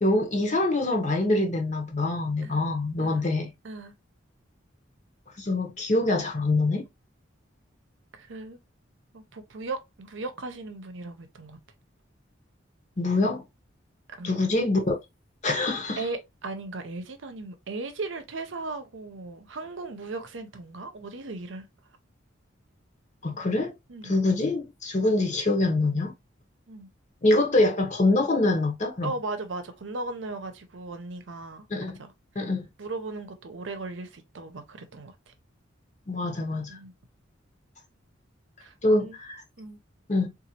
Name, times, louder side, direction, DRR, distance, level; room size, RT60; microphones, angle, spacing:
voice 1, 0.0-3.5 5.4-6.9 13.0-13.4 14.2-15.0 15.4-16.0 23.2-23.7 24.0-26.1 27.2-29.1 31.7-32.0 32.3-32.7 36.1-36.8 38.8-39.4 40.1-40.3, left 2 dB, 40° left, 0.8 m, -25 dB
voice 2, 2.4-3.2 3.6-3.9 8.1-8.6 9.1-11.6 14.1-14.4 16.0-21.7 23.9-24.2 26.7-26.9 29.0-31.7 32.0-32.1 32.4-32.5 32.8-35.3 36.7-36.9 38.6-39.2 39.6-39.8, right 3 dB, 70° right, 0.7 m, -37 dB
3.9 x 2.5 x 2.8 m
head